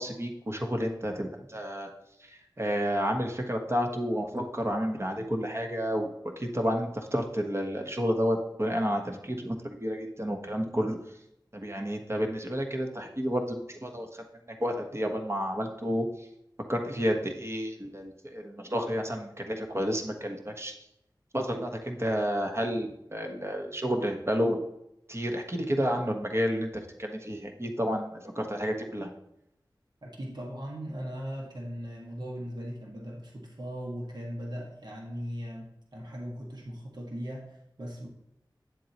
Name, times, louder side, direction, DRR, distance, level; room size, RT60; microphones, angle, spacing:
voice 1, 0.0-1.9 2.2-11.2 11.5-16.3 16.7-20.8 21.3-24.6 25.1-29.1, equal, 35° right, 3 dB, 1.3 m, -31 dB
voice 2, 30.0-38.1, equal, 60° right, -2 dB, 1.7 m, -39 dB
9.1 x 7.5 x 3.0 m, 0.81 s
wide cardioid pair, 55°, 8 cm